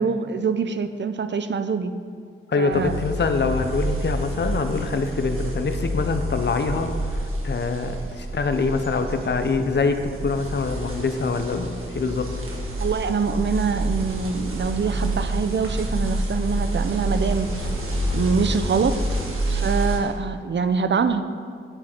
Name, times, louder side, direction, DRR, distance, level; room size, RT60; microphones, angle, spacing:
voice 1, 0.0-1.9 2.6-2.9 12.8-17.5 18.1-19.2 19.5-21.3, right 5 dB, 60° right, 10 dB, 0.6 m, -24 dB
voice 2, 2.5-6.9 7.4-12.3, left 4 dB, 55° left, 7 dB, 0.8 m, -24 dB
sound 1, 2.7-20.0, right 1 dB, 80° right, 1.7 m, -28 dB
9.0 x 8.9 x 4.5 m, 2.1 s
wide cardioid pair, 100°, 21 cm